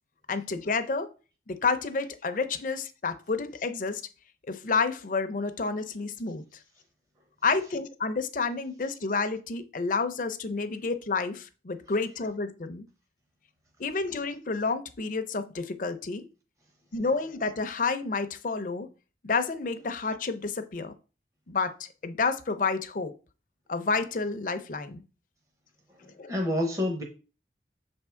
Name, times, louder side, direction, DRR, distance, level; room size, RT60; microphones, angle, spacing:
voice 1, 0.3-1.1 1.5-4.0 4.5-6.4 7.4-12.9 13.8-16.3 16.9-18.9 19.2-20.9 21.5-23.1 23.7-25.0 26.2-26.3, left 4 dB, 45° left, 0.5 m, -30 dB
voice 2, 26.0-27.0, left 1 dB, 20° right, 0.8 m, -28 dB
6.4 x 3.5 x 4.3 m
head